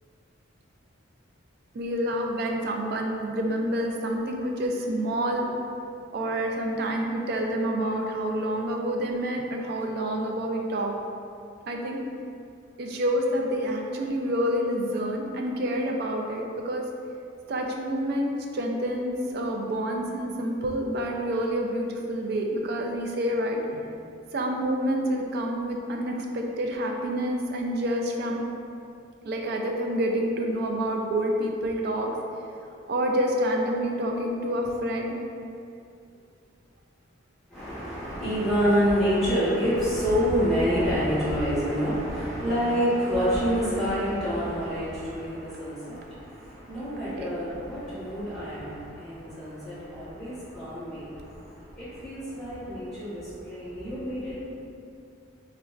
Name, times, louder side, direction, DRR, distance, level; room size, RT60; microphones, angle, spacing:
voice 1, 1.7-5.5 6.1-10.9 11.7-12.0 12.8-16.8 17.5-23.8 24.3-28.4 29.2-32.1 32.9-35.1 47.1-47.3, equal, 55° right, 2 dB, 0.3 m, -28 dB
voice 2, 37.5-51.1 51.7-54.4, equal, ahead, -13 dB, 1.2 m, -27 dB
3.9 x 2.2 x 2.4 m, 2.5 s
head